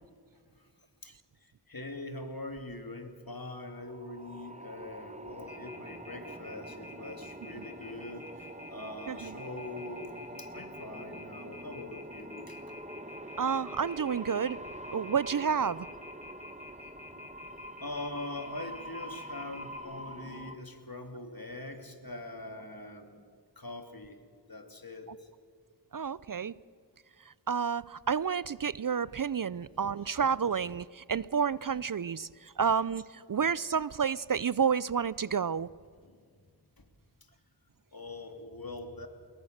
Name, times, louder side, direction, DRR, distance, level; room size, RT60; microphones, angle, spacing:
voice 1, 1.7-12.6 17.8-23.2 23.6-24.2 24.5-25.3 36.0-36.2 36.8-36.9 37.9-39.1, left 2 dB, 50° left, 6 dB, 2.6 m, -43 dB
sound 1, 3.5-20.6, right 1 dB, 15° right, 1.3 m, -45 dB
Telephone, 5.5-19.8, left 3 dB, 15° left, 4.6 m, -49 dB
voice 2, 13.4-14.6 14.9-15.9 25.9-26.5 27.5-35.7, right 6 dB, 50° right, 20 dB, 0.5 m, -30 dB
23.5 x 21.5 x 6.6 m, 2.1 s
wide cardioid pair, 40°, 44 cm